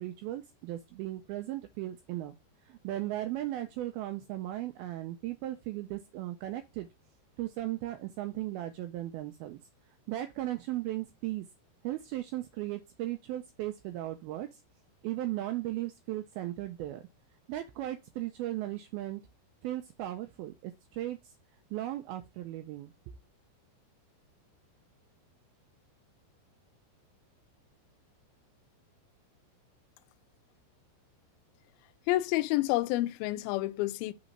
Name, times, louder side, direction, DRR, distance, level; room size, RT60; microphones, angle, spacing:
voice 1, 0.0-2.3 2.7-6.9 7.4-9.6 10.1-11.5 11.8-14.6 15.0-17.0 17.5-19.2 19.6-21.3 21.7-22.9, right 15 dB, 80° right, 2.2 m, -36 dB
voice 2, 32.1-34.1, left 17 dB, 90° left, 2.1 m, -29 dB
6.1 x 3.8 x 5.3 m
omnidirectional pair, 4.8 m